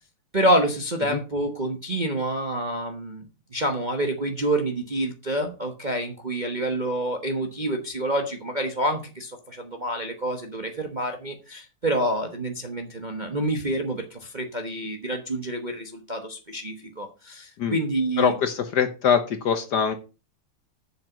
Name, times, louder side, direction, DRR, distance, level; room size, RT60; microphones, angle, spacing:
voice 1, 0.3-3.3 3.5-18.3, right 1 dB, 30° right, 4 dB, 0.9 m, -27 dB
voice 2, 18.2-20.0, left 7 dB, 60° left, 9 dB, 1.3 m, -23 dB
7.7 x 7.0 x 6.0 m, 0.32 s
omnidirectional pair, 2.4 m